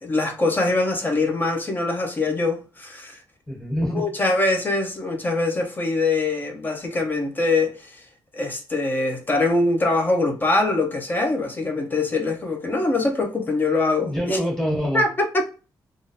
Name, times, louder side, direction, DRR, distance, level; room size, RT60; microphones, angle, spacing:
voice 1, 0.0-3.2 3.9-8.0 8.3-14.4 14.9-15.5, left 2 dB, 25° left, 0.6 m, -23 dB
voice 2, 3.5-4.0 14.0-15.0, equal, 5° left, 1.3 m, -25 dB
3.6 x 2.4 x 2.6 m
cardioid pair, 125°, 8 cm